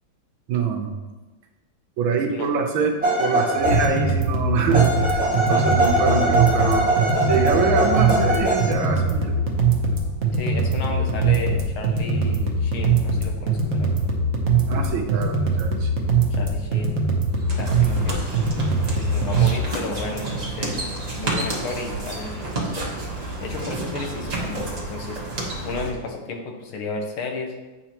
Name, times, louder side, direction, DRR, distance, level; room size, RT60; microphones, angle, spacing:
voice 1, 0.5-0.9 2.0-9.5 14.7-15.9, right 5 dB, 75° right, 3 dB, 1.5 m, -25 dB
sound 1, 3.0-4.1 4.7-8.9, right 1 dB, 5° right, 1.5 m, -22 dB
sound 2, 3.6-19.6, right 4 dB, 55° right, 0.8 m, -22 dB
voice 2, 5.3-5.7 10.3-14.1 16.3-16.9 17.6-18.2 18.9-22.8 23.4-25.2 25.6-27.5, left 3 dB, 80° left, 3 dB, 1.7 m, -33 dB
sound 3, 17.3-25.9, right 2 dB, 25° right, 0.8 m, -30 dB
8.8 x 5.0 x 2.9 m, 1.2 s
omnidirectional pair, 2.4 m